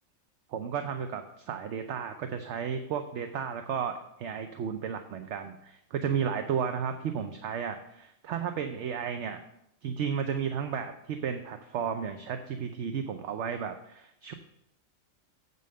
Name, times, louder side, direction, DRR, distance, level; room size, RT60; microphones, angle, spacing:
voice 1, 0.5-9.4 9.8-14.3, right 7 dB, 65° right, 7 dB, 0.9 m, -33 dB
8.0 x 5.4 x 6.4 m, 0.78 s
omnidirectional pair, 1.4 m